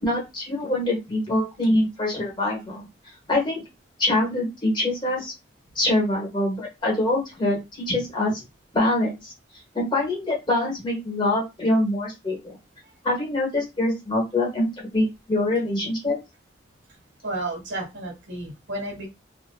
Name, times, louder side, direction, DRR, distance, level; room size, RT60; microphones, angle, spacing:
voice 1, 0.0-2.8 3.3-3.6 4.0-5.3 5.7-8.4 8.7-9.3 9.7-12.4 13.0-16.2, left 1 dB, 25° left, -2 dB, 1.0 m, -24 dB
voice 2, 17.2-19.1, right 2 dB, 90° right, -1 dB, 1.4 m, -32 dB
2.7 x 2.5 x 2.3 m, 0.23 s
head